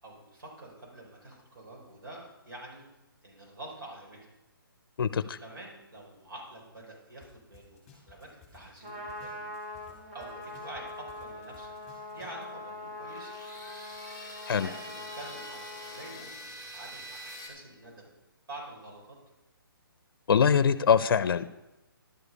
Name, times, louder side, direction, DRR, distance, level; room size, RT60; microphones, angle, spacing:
voice 1, 0.0-2.8 3.2-4.2 5.4-9.5 10.1-11.7 12.1-13.3 14.5-18.1 18.5-19.2, right 1 dB, 65° right, -2 dB, 4.3 m, -47 dB
voice 2, 5.0-5.4 14.5-14.7 20.3-21.5, left 7 dB, 65° left, 14 dB, 0.5 m, -23 dB
sound 1, 7.2-7.3 7.5-9.9 10.2-12.4, left 7 dB, 5° left, 2.7 m, -56 dB
Trumpet, 8.7-16.3, left 1 dB, 35° right, 1.9 m, -43 dB
sound 2, 13.1-17.5, equal, 15° right, 2.0 m, -45 dB
11.5 x 6.8 x 5.4 m, 0.99 s
hypercardioid pair, 165°, 12 cm